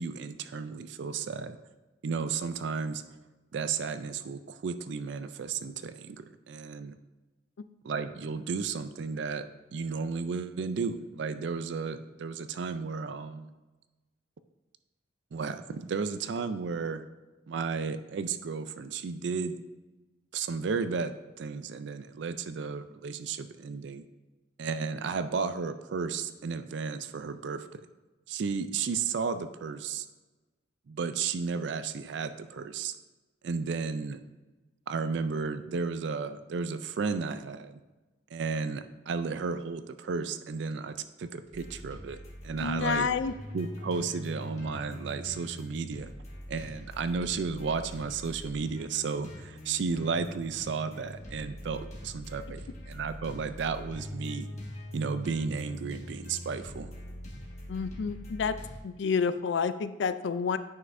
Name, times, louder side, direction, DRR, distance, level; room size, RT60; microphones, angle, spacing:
voice 1, 0.0-1.6 2.0-3.0 3.5-7.0 7.8-13.5 15.3-17.0 17.5-19.6 20.3-24.1 24.6-27.8 28.3-30.1 30.9-33.0 33.4-34.2 34.9-37.8 38.3-43.1 43.5-46.1 46.5-54.5 54.9-56.9, right 5 dB, 65° right, 11 dB, 0.4 m, -33 dB
sound 1, 41.5-58.8, left 1 dB, 35° left, 1.5 m, -43 dB
voice 2, 42.6-43.3 57.7-58.6 58.8-60.6, left 5 dB, 65° left, 13 dB, 0.4 m, -29 dB
9.5 x 5.5 x 2.6 m, 1.1 s
head